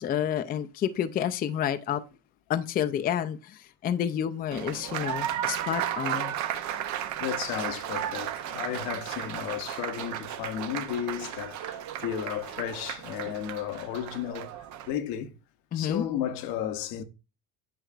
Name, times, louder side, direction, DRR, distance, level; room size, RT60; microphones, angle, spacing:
voice 1, 0.0-2.0 2.5-6.3 15.7-16.0, left 9 dB, 25° left, 0.4 m, -29 dB
Applause, 4.5-14.9, right 11 dB, 55° right, 0.7 m, -34 dB
voice 2, 7.2-14.6 14.9-15.4 15.7-17.0, left 10 dB, 85° left, 1.0 m, -33 dB
9.0 x 5.6 x 2.4 m
cardioid pair, 140°, 35 cm